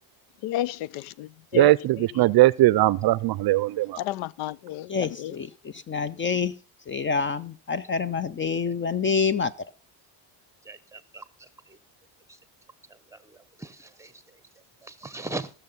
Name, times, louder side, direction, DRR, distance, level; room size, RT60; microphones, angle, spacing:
voice 1, 0.4-1.7 2.0-2.1 4.0-5.3, left 14 dB, 90° left, 0.6 m, -32 dB
voice 2, 1.5-4.0, right 16 dB, 50° right, 0.5 m, -20 dB
voice 3, 4.9-5.5 5.9-6.5 6.9-9.5, left 5 dB, 25° left, 0.5 m, -26 dB
voice 4, 10.7-11.2 13.1-14.1 14.8-15.5, right 2 dB, 5° right, 0.9 m, -39 dB
15.0 x 6.8 x 5.4 m
cardioid pair, 110°, 49 cm